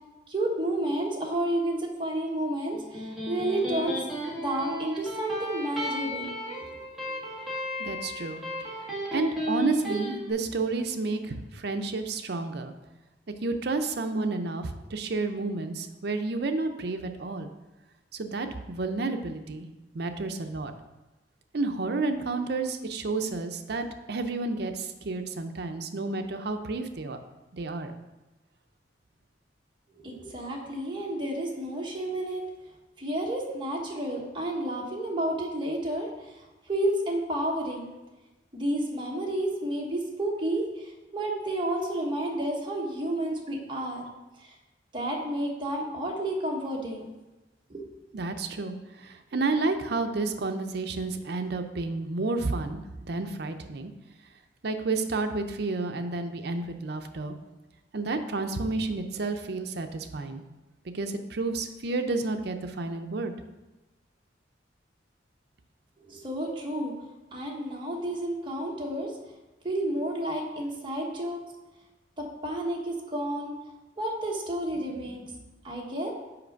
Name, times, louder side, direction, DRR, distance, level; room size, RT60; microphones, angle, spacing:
voice 1, 0.3-4.0 4.4-6.3 30.0-32.4 33.0-36.1 36.7-37.9 38.5-40.6 41.1-44.0 44.4-44.5 44.9-47.1 47.7-47.8 66.1-66.9 67.3-69.1 69.6-71.4 72.2-73.5 74.0-75.3 75.6-76.1, right 1 dB, 25° right, -2 dB, 1.2 m, -30 dB
Electric guitar, 2.7-10.1, equal, ahead, 1.6 m, -34 dB
voice 2, 7.8-8.4 9.1-12.7 13.4-17.5 18.1-19.7 19.9-20.7 21.5-27.2 27.5-27.9 48.1-53.9 54.6-57.3 57.9-60.4 60.9-63.3, right 3 dB, 60° right, 6 dB, 0.6 m, -31 dB
5.8 x 5.1 x 5.2 m, 1.1 s
head